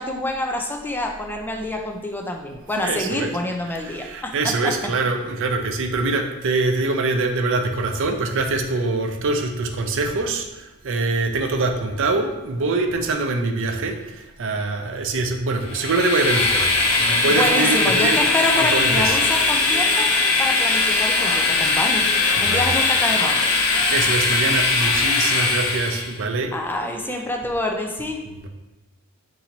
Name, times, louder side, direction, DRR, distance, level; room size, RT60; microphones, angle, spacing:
voice 1, 0.0-4.9 17.3-22.1 22.4-23.4 24.0-24.1 26.5-28.2, left 1 dB, 10° left, 2 dB, 0.4 m, -27 dB
voice 2, 2.8-3.3 3.7-18.2 18.5-19.2 22.4-22.7 23.6-26.6 28.3-28.5, right 3 dB, 60° right, 5 dB, 0.5 m, -24 dB
Train, 15.7-26.1, left 3 dB, 70° left, 0.6 m, -20 dB
4.3 x 2.7 x 3.8 m, 1.1 s
head